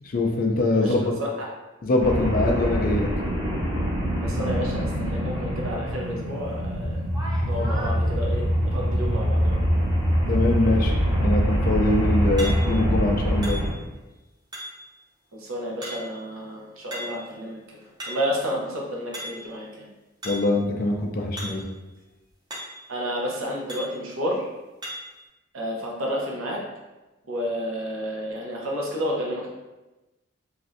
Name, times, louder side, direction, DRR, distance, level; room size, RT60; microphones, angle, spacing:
voice 1, 0.0-1.2 1.8-3.1 10.3-13.6 20.2-21.6, left 2 dB, 40° left, 2 dB, 0.4 m, -23 dB
sound 1, 2.0-13.7, equal, 55° right, 1.3 m, -24 dB
voice 2, 4.2-7.0 7.5-9.5 15.4-17.6 18.1-19.9 22.9-24.4 25.5-26.6 27.3-29.5, equal, 70° right, -2 dB, 0.7 m, -30 dB
sound 2, 6.5-6.6 7.1-8.0 12.4-12.9 13.4-14.0 14.5-14.9 15.8-16.3 16.9-17.3 17.7-18.4 19.1-19.6 20.2-20.6 21.4-21.7 22.0-22.1 22.5-22.9 23.7-24.0 24.8-25.2, equal, 20° right, 0.6 m, -37 dB
3.1 x 2.5 x 2.5 m, 1.1 s
head